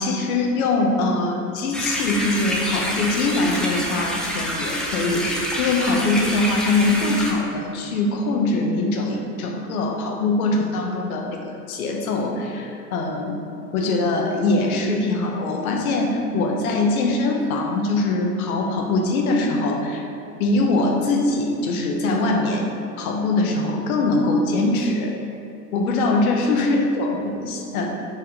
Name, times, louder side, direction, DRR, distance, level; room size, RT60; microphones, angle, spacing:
voice 1, 0.0-13.4 13.7-20.0 20.4-22.7 23.0-25.2 25.7-27.9, left 2 dB, 60° left, 1 dB, 1.2 m, -22 dB
sound 1, 1.7-7.3, equal, ahead, 0.4 m, -27 dB
5.0 x 4.5 x 5.4 m, 2.7 s
figure-of-eight pair, 90°, 48 cm